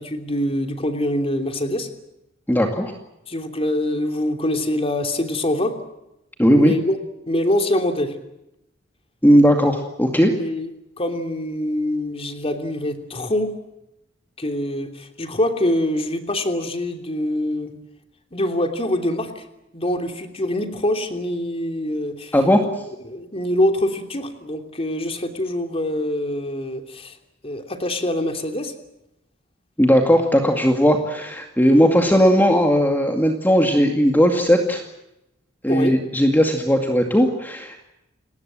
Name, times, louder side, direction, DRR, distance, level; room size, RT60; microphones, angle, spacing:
voice 1, 0.0-1.9 3.3-5.7 6.5-7.0 7.3-8.2 10.4-10.7 11.0-13.5 14.4-17.7 18.3-19.4 19.7-22.3 23.0-27.2 27.4-28.7 35.7-36.0, left 1 dB, 30° left, 6 dB, 3.1 m, -24 dB
voice 2, 2.5-2.9 6.4-6.7 9.2-10.3 22.3-22.6 29.8-34.8 35.6-37.8, equal, 10° left, 3 dB, 2.2 m, -17 dB
30.0 x 19.5 x 7.6 m, 0.89 s
head